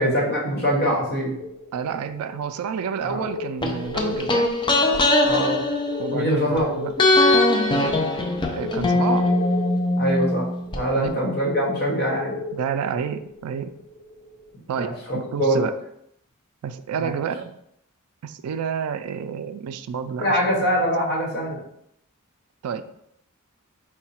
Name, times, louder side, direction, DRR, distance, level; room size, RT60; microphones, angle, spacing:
voice 1, 0.0-1.4 3.0-3.2 5.2-5.6 6.1-6.7 10.0-10.5 10.7-12.3 14.8-14.9 15.4-15.6 17.0-17.1 20.2-21.6, equal, 50° left, -3 dB, 1.3 m, -23 dB
sound 1, 1.3-14.6, left 2 dB, 85° left, 0.8 m, -37 dB
voice 2, 1.7-4.5 6.0-6.9 7.7-9.3 11.0-11.3 12.5-13.7 14.7-15.8 16.6-17.6 18.2-20.7 22.6-22.9, right 7 dB, 80° right, 11 dB, 0.3 m, -30 dB
sound 2, 3.6-6.6 7.0-10.8 11.1-11.2, left 2 dB, 20° left, 0.4 m, -21 dB
4.6 x 2.1 x 4.2 m, 0.75 s
head